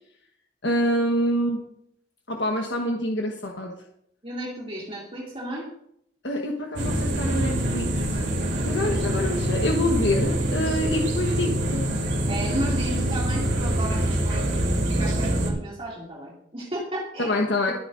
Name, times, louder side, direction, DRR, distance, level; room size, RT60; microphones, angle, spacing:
voice 1, 0.6-1.6 2.3-3.7 6.2-8.0 8.6-11.9 17.2-17.7, left 1 dB, 80° left, 1 dB, 1.4 m, -26 dB
voice 2, 4.2-5.7 12.3-17.4, right 1 dB, 35° right, -5 dB, 2.7 m, -34 dB
sound 1, 6.8-15.5, right 1 dB, 75° right, 3.3 m, -25 dB
23.5 x 9.1 x 2.7 m, 0.73 s
head